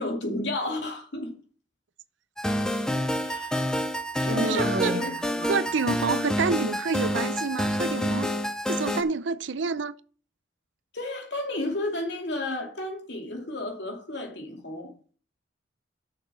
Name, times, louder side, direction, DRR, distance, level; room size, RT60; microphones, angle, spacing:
voice 1, 0.0-1.3 3.2-3.6 4.2-5.1 10.9-14.9, left 1 dB, 65° left, 2.5 m, -32 dB
sound 1, 2.4-9.0, equal, 5° left, 0.6 m, -28 dB
Human voice, 4.3-6.0, right 2 dB, 45° right, 0.8 m, -32 dB
voice 2, 4.5-4.9 5.5-8.3 8.7-9.9, right 4 dB, 75° right, 0.6 m, -28 dB
6.6 x 6.5 x 7.1 m
head